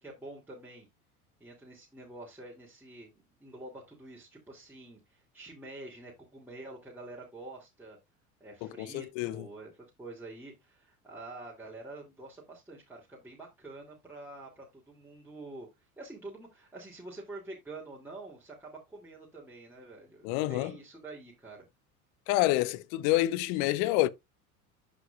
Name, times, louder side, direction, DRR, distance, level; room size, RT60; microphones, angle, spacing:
voice 1, 0.0-0.9 1.4-3.1 3.4-8.0 8.4-15.7 16.0-21.7, right 2 dB, 5° right, 2.7 m, -47 dB
voice 2, 8.8-9.4 20.2-20.7 22.3-24.1, left 16 dB, 55° left, 0.7 m, -28 dB
13.0 x 5.2 x 2.4 m
hypercardioid pair, 75°, 44 cm